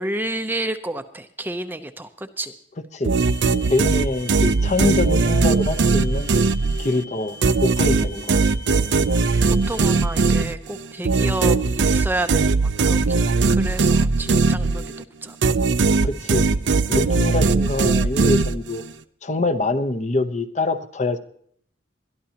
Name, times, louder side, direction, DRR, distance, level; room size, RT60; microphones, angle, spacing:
voice 1, 0.0-2.5 9.7-14.9 15.2-15.4, right 1 dB, 10° right, 8 dB, 0.6 m, -30 dB
sound 1, 3.0-7.0 7.4-15.0 15.4-18.9, right 3 dB, 75° right, 0.6 m, -19 dB
sound 2, 3.2-10.3, left 4 dB, 90° left, 5.4 m, -43 dB
voice 2, 3.7-6.3 6.8-8.3 16.0-16.5 16.9-18.8 19.2-21.2, left 2 dB, 40° left, 10 dB, 0.8 m, -24 dB
22.0 x 12.5 x 2.9 m, 0.63 s
head